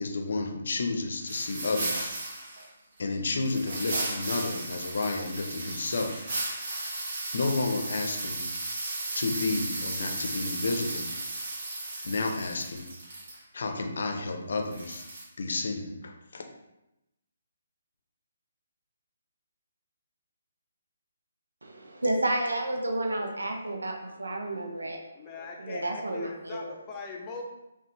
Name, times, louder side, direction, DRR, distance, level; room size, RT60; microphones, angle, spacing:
voice 1, 0.0-2.1 3.0-6.2 7.3-8.5 9.1-11.1 12.0-12.9 13.5-15.1 15.4-16.5, left 3 dB, 55° left, 4 dB, 0.6 m, -31 dB
Homemade Palo de lluvia (rainstick), 1.2-2.7 3.4-13.4 14.7-15.2, right 2 dB, 45° right, 0.9 m, -35 dB
voice 2, 21.6-25.0 25.6-26.7, right 1 dB, 75° right, 1 dB, 0.7 m, -31 dB
voice 3, 25.2-27.4, left 4 dB, 20° left, 0 dB, 0.7 m, -41 dB
5.4 x 2.4 x 3.0 m, 0.93 s
figure-of-eight pair, 140°, 0 cm